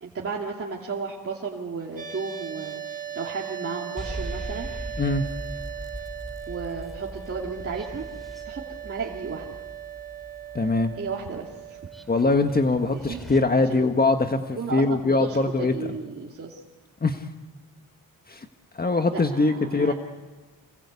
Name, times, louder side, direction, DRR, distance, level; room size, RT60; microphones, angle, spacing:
voice 1, 0.0-4.7 6.5-8.0 8.4-9.6 11.0-11.8 12.9-13.2 13.6-13.8 14.3-16.6 19.1-19.9, right 5 dB, 40° right, -2 dB, 2.8 m, -34 dB
sound 1, 2.0-12.0, right 10 dB, 25° right, 5.3 m, -38 dB
sound 2, 4.0-13.4, right 1 dB, ahead, 2.8 m, -40 dB
voice 2, 10.5-10.9 12.1-15.7 17.0-17.2 18.3-18.4 18.7-19.9, left 3 dB, 25° left, 6 dB, 1.5 m, -22 dB
28.0 x 22.0 x 8.4 m, 1.3 s
cardioid pair, 100°, 34 cm